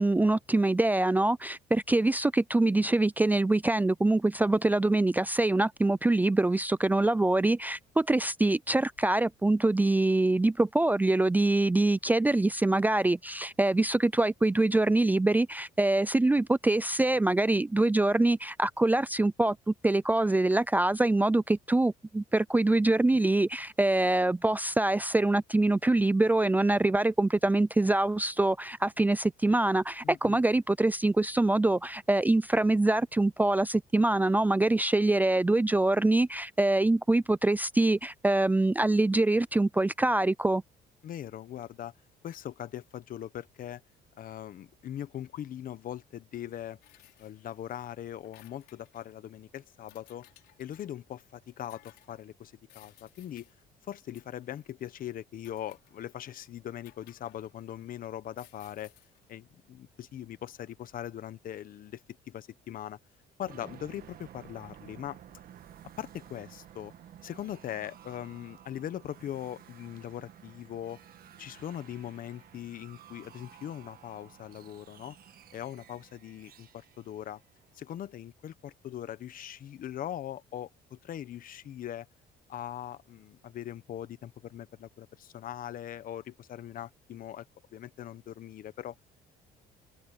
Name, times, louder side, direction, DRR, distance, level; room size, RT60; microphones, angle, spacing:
voice 1, 0.0-40.6, right 2 dB, 10° right, 0.5 m, -25 dB
voice 2, 30.0-30.4 41.0-41.9 42.2-43.8 44.2-46.8 47.2-50.3 50.6-53.5 53.9-58.9 59.3-63.0 63.4-65.2 66.0-66.9 67.2-71.0 71.4-75.1 75.5-77.4 77.7-82.1 82.5-87.4 87.7-88.9, left 11 dB, 55° left, 1.2 m, -41 dB
sound 1, 46.8-47.8 48.1-49.1 49.9-51.0 51.7-52.2 52.7-53.5 54.1-54.6 55.4-56.2 56.9-57.8 58.3-59.2, left 16 dB, 85° left, 5.0 m, -60 dB
sound 2, 63.4-78.1, right 11 dB, 60° right, 1.8 m, -53 dB
cardioid pair, 110°, 17 cm